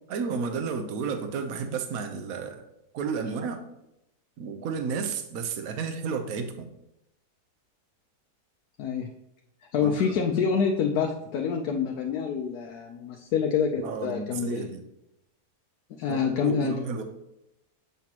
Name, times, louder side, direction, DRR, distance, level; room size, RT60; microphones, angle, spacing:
voice 1, 0.1-2.7 2.9-3.6 4.4-6.7 9.8-10.1 13.8-14.8 16.1-17.0, right 5 dB, 65° right, 6 dB, 1.2 m, -32 dB
voice 2, 9.7-14.7 16.0-16.8, left 6 dB, 75° left, 2 dB, 1.2 m, -27 dB
7.7 x 6.9 x 2.9 m, 0.84 s
omnidirectional pair, 1.7 m